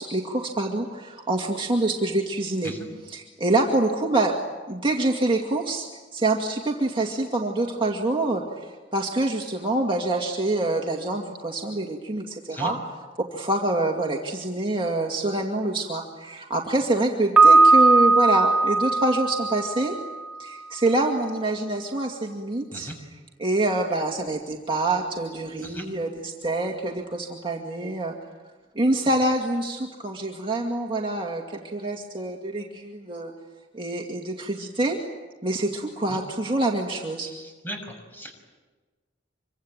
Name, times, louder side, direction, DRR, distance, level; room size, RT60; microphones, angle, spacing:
voice 1, 0.0-2.7 3.0-4.4 4.7-5.9 6.1-12.8 13.2-19.9 20.4-22.9 23.4-28.1 28.8-33.3 33.7-35.0 35.4-37.3, right 2 dB, 25° right, 0 dB, 2.3 m, -26 dB
Piano, 17.4-20.2, right 3 dB, 5° right, 1.9 m, -18 dB
voice 2, 37.2-37.8 38.1-38.3, right 1 dB, 10° left, 3 dB, 6.4 m, -36 dB
26.0 x 24.5 x 8.9 m, 1.3 s
head